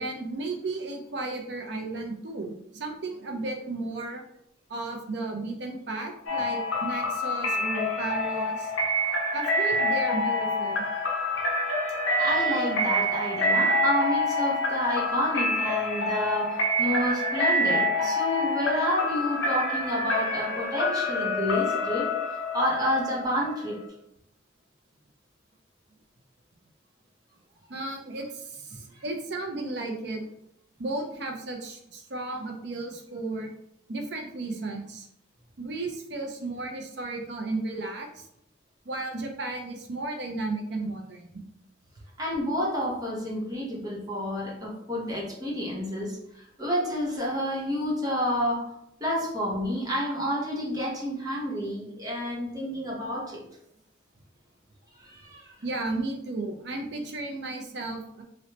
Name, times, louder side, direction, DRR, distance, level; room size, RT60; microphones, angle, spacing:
voice 1, 0.0-4.2 4.7-8.7 9.3-10.8 27.7-30.3 30.8-33.5 33.9-35.1 35.6-38.3 38.9-41.3 55.6-58.2, right 2 dB, 60° right, 3 dB, 0.6 m, -34 dB
sound 1, 6.3-23.9, left 1 dB, 85° left, 0.6 m, -27 dB
voice 2, 12.2-23.8 28.7-29.0 42.2-48.7 49.0-53.4 55.0-55.5, equal, 20° right, -4 dB, 0.9 m, -29 dB
3.0 x 3.0 x 2.9 m, 0.77 s
head